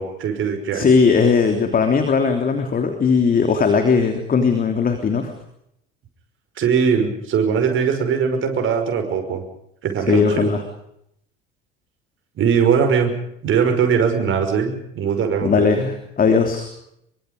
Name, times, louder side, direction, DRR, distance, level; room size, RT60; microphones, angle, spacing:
voice 1, 0.0-0.9 6.6-9.4 9.8-10.5 12.4-13.1 13.4-15.7, right 6 dB, 40° right, 5 dB, 5.6 m, -20 dB
voice 2, 0.7-5.3 10.1-10.6 15.4-16.7, left 5 dB, 30° left, 6 dB, 3.2 m, -18 dB
25.0 x 24.0 x 5.2 m, 0.75 s
figure-of-eight pair, 65°, 30 cm